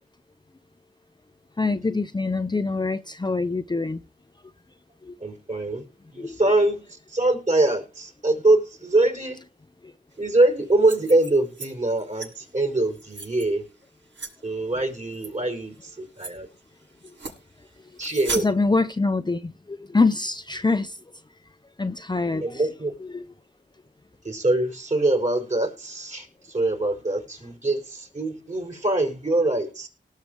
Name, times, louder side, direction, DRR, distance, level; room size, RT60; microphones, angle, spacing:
voice 1, 1.6-4.0 5.0-5.1 6.2-6.4 18.4-21.0 21.8-22.6 23.0-23.3, left 3 dB, 25° left, 0.7 m, -25 dB
voice 2, 5.2-5.8 6.1-6.8 7.1-9.4 10.2-13.6 14.4-16.5 18.0-18.5 22.4-22.9 24.2-29.9, right 2 dB, 40° right, 5.5 m, -23 dB
sound 1, 10.7-11.7 12.0-12.3 12.8-13.5 14.1-14.3 15.1-15.3 15.8-15.9 16.2-16.3 17.0-17.4 18.0-18.5, right 3 dB, 80° right, 7.3 m, -35 dB
19.0 x 6.6 x 4.8 m
cardioid pair, 60°, 19 cm